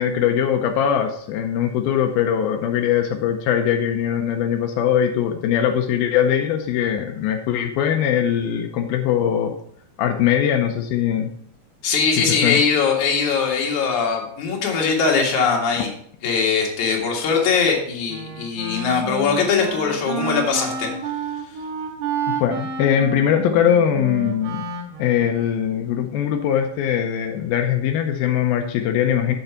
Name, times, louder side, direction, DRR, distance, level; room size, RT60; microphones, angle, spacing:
voice 1, 0.0-9.5 10.0-11.3 12.2-12.6 22.4-24.6 25.0-29.4, left 9 dB, 85° left, 5 dB, 2.1 m, -21 dB
voice 2, 11.8-15.9 16.2-20.9, left 5 dB, 50° left, 0 dB, 2.7 m, -21 dB
Wind instrument woodwind instrument, 18.1-25.4, right 5 dB, 80° right, 3.6 m, -30 dB
7.8 x 6.7 x 5.8 m, 0.65 s
omnidirectional pair, 5.1 m